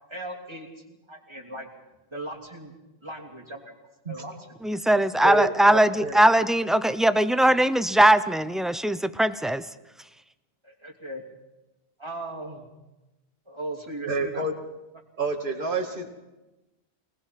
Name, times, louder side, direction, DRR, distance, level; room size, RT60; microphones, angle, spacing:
voice 1, 0.1-1.7 2.1-2.7 3.0-3.7 4.1-4.3 10.6-11.2 12.0-12.7 13.5-14.5, right 1 dB, 25° right, 0 dB, 3.0 m, -38 dB
voice 2, 4.6-9.6, right 1 dB, ahead, 11 dB, 0.6 m, -20 dB
voice 3, 5.2-6.2 14.1-14.5 15.2-16.1, right 2 dB, 50° right, 1 dB, 2.4 m, -28 dB
25.0 x 20.0 x 5.9 m, 1.0 s
omnidirectional pair, 1.1 m